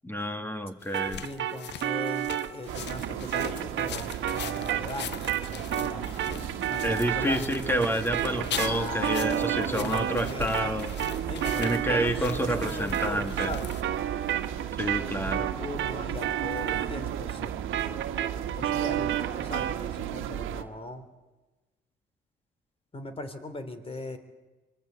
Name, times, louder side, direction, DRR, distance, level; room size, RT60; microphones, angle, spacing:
voice 1, 0.0-1.3 6.8-10.9 11.6-13.5 14.8-15.5, equal, 10° left, 7 dB, 2.2 m, -29 dB
sound 1, 0.8-13.8, left 11 dB, 60° left, 0.7 m, -42 dB
sound 2, 0.9-10.3 10.5-19.8, right 11 dB, 70° right, 1.6 m, -32 dB
voice 2, 1.2-6.1 6.6-7.5 8.4-10.7 11.3-13.7 15.2-17.5 18.6-21.1 22.9-24.2, left 2 dB, 30° left, 10 dB, 3.5 m, -39 dB
sound 3, 2.7-20.6, right 10 dB, 90° right, 1.6 m, -35 dB
25.0 x 21.5 x 8.2 m, 1.1 s
cardioid pair, 90°, 20 cm